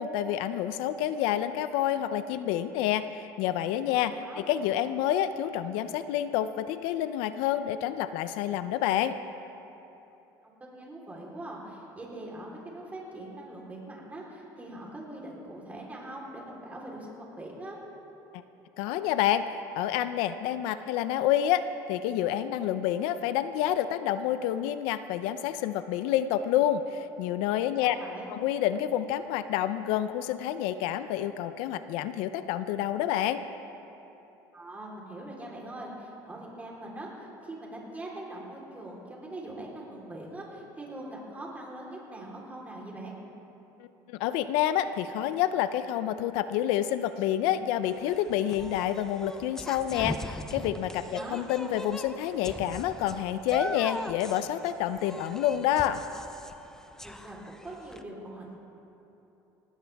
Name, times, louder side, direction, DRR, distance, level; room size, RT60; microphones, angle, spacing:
voice 1, 0.0-9.2 18.8-19.4 19.7-21.6 21.9-28.0 28.3-33.4 43.8-56.0, left 11 dB, 85° left, 12 dB, 0.6 m, -28 dB
voice 2, 3.9-4.5 10.4-17.8 27.8-28.4 34.5-43.1 51.0-51.4 57.0-58.6, right 1 dB, 15° right, -3 dB, 3.9 m, -42 dB
sound 1, 47.9-58.0, left 1 dB, 5° left, 0.7 m, -40 dB
18.0 x 17.5 x 3.5 m, 3.0 s
cardioid pair, 115°, 9 cm